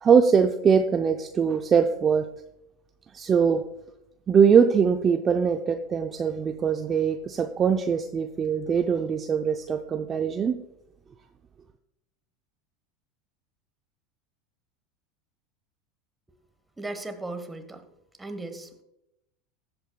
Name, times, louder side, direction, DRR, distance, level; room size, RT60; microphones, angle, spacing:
voice 1, 0.0-2.3 3.1-3.6 4.3-10.6, right 6 dB, 30° right, 6 dB, 0.5 m, -22 dB
voice 2, 16.8-17.9 18.2-18.8, right 2 dB, 10° right, 7 dB, 1.2 m, -36 dB
14.0 x 7.9 x 2.3 m, 0.84 s
hypercardioid pair, 95°, 0 cm